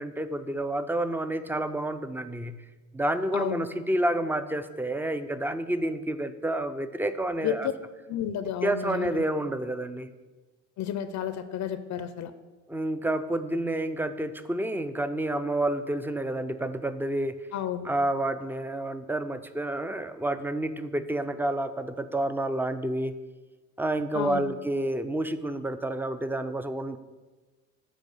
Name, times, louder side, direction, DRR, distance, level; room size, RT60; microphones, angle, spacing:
voice 1, 0.0-2.6 2.9-7.7 8.6-10.1 12.7-17.4 17.8-23.1 23.8-27.0, right 1 dB, 5° right, 11 dB, 0.4 m, -29 dB
voice 2, 3.3-3.7 7.4-7.6 8.1-9.2 10.8-12.3 17.5-17.9 24.1-24.5, left 9 dB, 70° left, 12 dB, 0.5 m, -31 dB
8.2 x 4.3 x 5.5 m, 1.3 s
cardioid pair, 90°, 30 cm